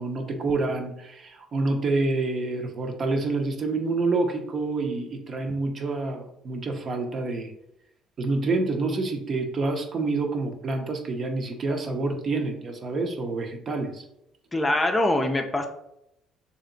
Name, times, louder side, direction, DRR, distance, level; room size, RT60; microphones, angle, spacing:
voice 1, 0.0-7.5 8.2-14.0, right 3 dB, 45° right, 4 dB, 0.7 m, -27 dB
voice 2, 14.5-15.7, left 1 dB, 20° left, 4 dB, 0.5 m, -23 dB
3.2 x 2.8 x 3.8 m, 0.79 s
supercardioid pair, 85°, 0 cm